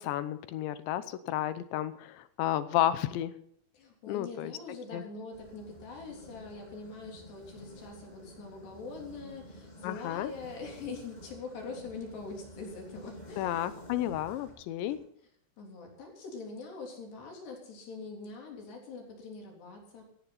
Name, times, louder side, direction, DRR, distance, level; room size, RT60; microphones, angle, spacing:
voice 1, 0.0-3.3 4.1-4.5 4.9-5.0 9.8-10.3 13.4-15.0, left 12 dB, 80° left, 13 dB, 3.1 m, -32 dB
voice 2, 3.7-13.6 15.6-20.0, left 4 dB, 65° left, 1 dB, 5.5 m, -43 dB
sound 1, 5.3-15.0, equal, 10° left, 6.9 m, -51 dB
17.0 x 15.0 x 4.1 m, 0.67 s
omnidirectional pair, 5.3 m